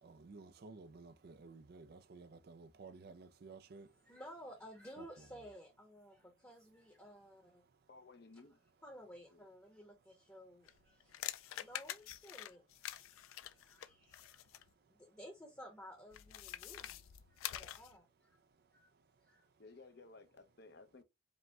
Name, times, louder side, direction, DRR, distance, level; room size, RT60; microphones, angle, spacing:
voice 1, 0.0-3.9 5.0-5.1, right 3 dB, 50° right, 0.4 m, -54 dB
voice 2, 3.7-7.6 8.8-12.6 12.9-14.4 14.9-18.4 18.7-18.9 19.2-19.5, equal, 10° left, 0.8 m, -55 dB
voice 3, 7.9-8.6 9.3-9.4 19.6-21.0, left 3 dB, 50° left, 0.7 m, -57 dB
sound 1, 10.7-14.7 16.1-18.0, left 12 dB, 85° left, 0.4 m, -46 dB
5.1 x 2.1 x 3.4 m
head